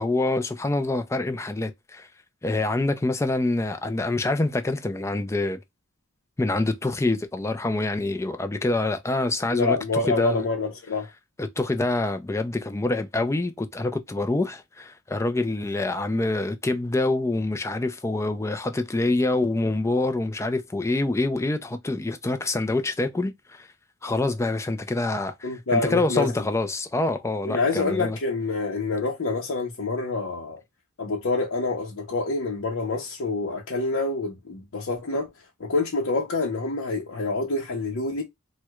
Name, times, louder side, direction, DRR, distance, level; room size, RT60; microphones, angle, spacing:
voice 1, 0.0-2.1 2.4-5.6 6.4-10.4 11.4-23.7 24.0-28.2, left 2 dB, 15° left, 0.4 m, -26 dB
voice 2, 9.5-11.1 25.4-26.3 27.4-30.6 31.0-35.3 35.6-38.2, left 3 dB, 65° left, 0.7 m, -27 dB
4.5 x 2.2 x 2.3 m
head